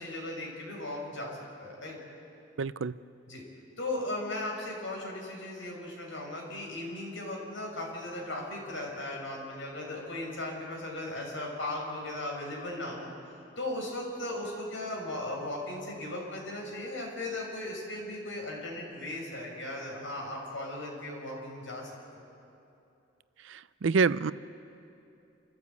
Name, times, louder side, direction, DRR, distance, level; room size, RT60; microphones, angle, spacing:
voice 1, 0.0-2.0 3.3-3.4 3.8-13.1 13.6-22.2, left 1 dB, 80° left, -1 dB, 5.6 m, -37 dB
voice 2, 2.6-2.9 23.8-24.3, right 5 dB, 75° right, 17 dB, 0.5 m, -25 dB
28.0 x 14.5 x 8.3 m, 2.7 s
head